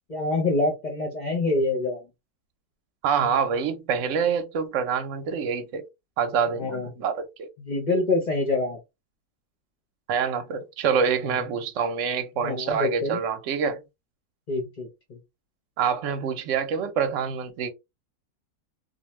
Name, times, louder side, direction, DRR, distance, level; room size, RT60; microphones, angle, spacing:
voice 1, 0.1-2.0 6.6-6.9 7.6-8.8 11.3-11.4 12.4-13.2 14.5-15.2, left 2 dB, 45° left, 0.5 m, -26 dB
voice 2, 3.0-5.8 6.2-7.5 10.1-13.8 15.8-17.7, right 6 dB, 65° right, 0.9 m, -26 dB
2.6 x 2.1 x 3.0 m
omnidirectional pair, 1.6 m